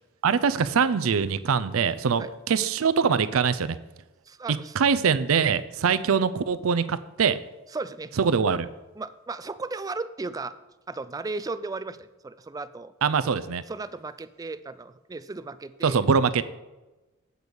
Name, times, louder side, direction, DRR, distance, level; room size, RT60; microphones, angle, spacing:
voice 1, 0.2-3.8 4.7-7.4 8.2-8.7 13.0-13.6 15.8-16.4, right 6 dB, 90° right, 15 dB, 0.5 m, -23 dB
voice 2, 4.3-4.8 7.7-8.2 9.0-10.6 10.9-12.9 13.7-16.0, right 3 dB, 20° right, 13 dB, 0.3 m, -35 dB
8.1 x 6.2 x 5.2 m, 1.1 s
head